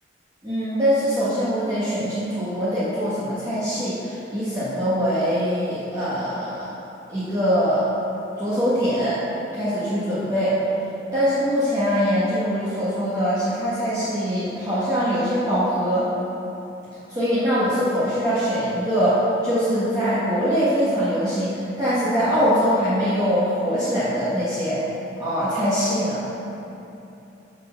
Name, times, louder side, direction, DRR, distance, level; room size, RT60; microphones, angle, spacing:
voice 1, 0.4-6.7 7.1-7.8 8.4-9.2 9.5-10.6 11.1-16.1 17.1-24.8 25.2-26.2, equal, 20° right, -12 dB, 1.4 m, -23 dB
6.5 x 6.3 x 5.7 m, 2.9 s
head